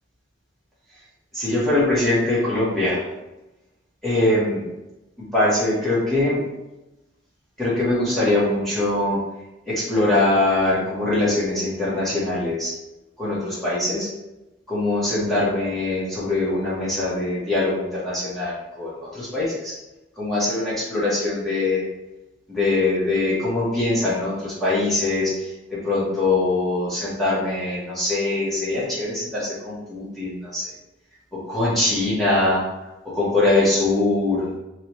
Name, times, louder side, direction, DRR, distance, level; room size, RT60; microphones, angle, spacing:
voice 1, 1.3-3.0 4.0-4.7 5.2-6.4 7.6-9.2 9.7-12.8 13.2-14.1 14.7-19.8 20.2-21.8 22.5-30.7 31.3-32.7 33.1-34.5, left 2 dB, ahead, -9 dB, 1.0 m, -22 dB
2.9 x 2.8 x 2.9 m, 0.99 s
head